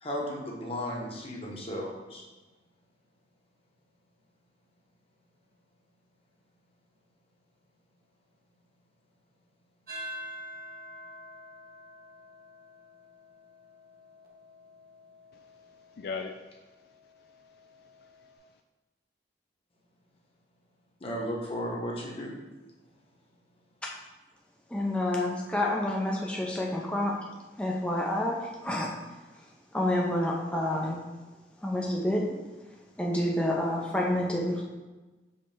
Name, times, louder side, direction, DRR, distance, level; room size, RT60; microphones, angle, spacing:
voice 1, 0.0-2.2 21.0-22.3, equal, 35° left, -2 dB, 1.2 m, -35 dB
sound 1, 9.9-18.4, equal, 55° right, 1.0 m, -47 dB
voice 2, 15.3-18.6, left 4 dB, 60° left, 4 dB, 0.4 m, -43 dB
voice 3, 24.7-27.2 27.6-28.9 29.7-31.0 31.6-32.4 33.0-34.6, left 1 dB, 5° left, -2 dB, 0.6 m, -28 dB
5.3 x 3.4 x 5.5 m, 1.2 s
head